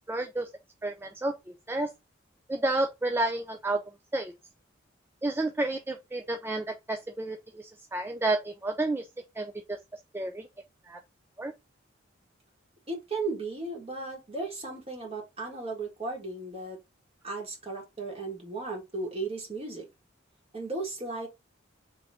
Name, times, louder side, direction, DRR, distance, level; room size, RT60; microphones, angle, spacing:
voice 1, 0.1-0.5 0.8-1.9 2.5-3.8 4.1-4.3 5.2-9.1 9.4-9.8 10.1-10.5 10.9-11.0 11.4-11.5, right 2 dB, 10° right, 0.4 m, -30 dB
voice 2, 12.9-16.8 17.2-19.9 20.5-21.3, right 3 dB, 30° right, 1.9 m, -35 dB
3.4 x 3.0 x 4.8 m
head